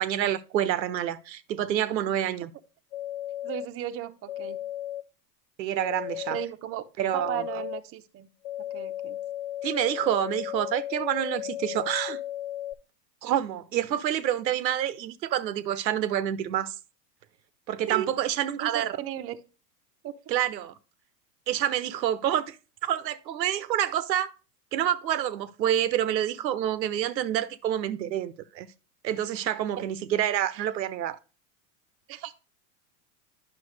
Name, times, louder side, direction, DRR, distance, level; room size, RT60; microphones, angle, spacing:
voice 1, 0.0-2.5 5.6-6.4 7.0-7.4 9.6-12.2 13.2-16.7 17.7-19.0 20.3-20.7 21.5-22.6 22.8-24.3 24.7-28.7 29.0-31.2, right 11 dB, 90° right, 0.8 m, -28 dB
sound 1, 2.9-3.6 4.3-5.0 5.8-6.5 7.1-7.8 8.4-12.7, left 12 dB, 50° left, 0.8 m, -35 dB
voice 2, 3.4-4.6 6.3-6.9 7.1-8.3 8.6-9.2 17.9-18.1 18.6-19.4 20.0-20.1 29.8-29.9 30.5-30.6 32.1-32.4, right 12 dB, 30° right, 0.7 m, -35 dB
9.7 x 5.9 x 3.2 m
hypercardioid pair, 105°, 49 cm